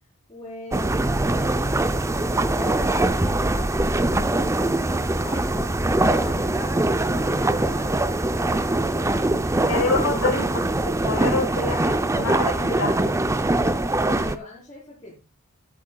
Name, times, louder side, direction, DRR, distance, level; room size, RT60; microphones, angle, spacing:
voice 1, 0.3-3.9 4.2-9.2 9.6-9.9 14.1-15.2, left 2 dB, 20° left, -7 dB, 4.6 m, -42 dB
sound 1, 0.7-14.4, right 2 dB, 15° right, 0.5 m, -22 dB
voice 2, 9.7-13.3, left 3 dB, 65° left, -1 dB, 2.3 m, -27 dB
12.5 x 11.0 x 2.3 m, 0.28 s
head